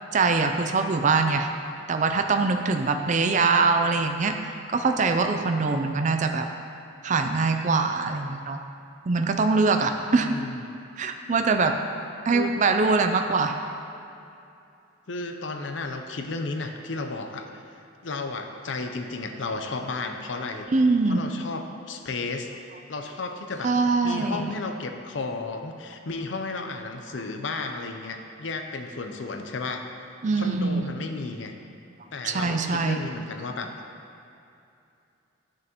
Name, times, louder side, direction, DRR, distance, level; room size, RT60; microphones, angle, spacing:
voice 1, 0.1-1.5 1.9-4.4 4.7-6.5 7.0-8.6 9.1-10.3 11.0-11.8 12.3-13.5 20.7-21.2 23.6-24.5 30.2-30.9 32.2-33.0, right 4 dB, 40° right, 6 dB, 0.4 m, -23 dB
voice 2, 10.2-10.6 12.3-12.5 15.1-17.6 18.0-20.7 21.1-22.5 22.9-23.7 24.0-29.9 30.4-31.5 32.1-33.7, left 3 dB, 65° left, 5 dB, 0.6 m, -33 dB
11.0 x 6.3 x 3.0 m, 2.6 s
head